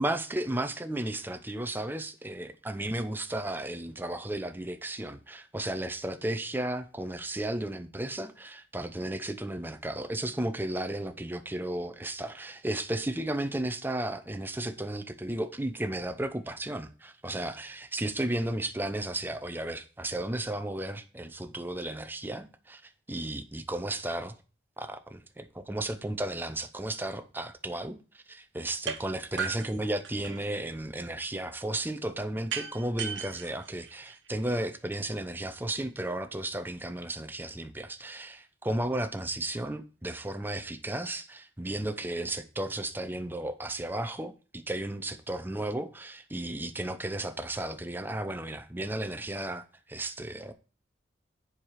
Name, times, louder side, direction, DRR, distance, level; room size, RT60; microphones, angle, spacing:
voice 1, 0.0-22.8 23.1-24.3 24.8-50.5, right 1 dB, 10° right, 0.7 m, -34 dB
sound 1, 28.9-29.0 29.4-30.6 32.5-34.5, right 6 dB, 70° right, 1.2 m, -36 dB
7.5 x 4.9 x 5.7 m
head